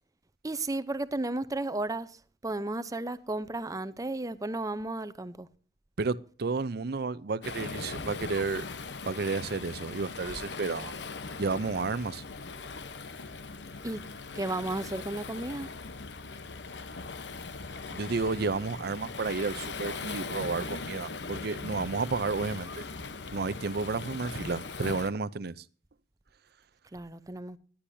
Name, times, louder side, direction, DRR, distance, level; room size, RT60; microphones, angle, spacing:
voice 1, 0.4-2.1 2.4-5.5 13.8-14.0 14.3-15.7 26.9-27.6, right 2 dB, 20° right, 0.7 m, -33 dB
voice 2, 6.0-8.6 9.1-10.9 11.4-12.2 17.9-22.8 23.3-25.7, right 4 dB, 60° right, 0.6 m, -32 dB
Waves surf, 7.4-25.1, left 4 dB, 75° left, 1.0 m, -40 dB
20.0 x 10.0 x 2.7 m
head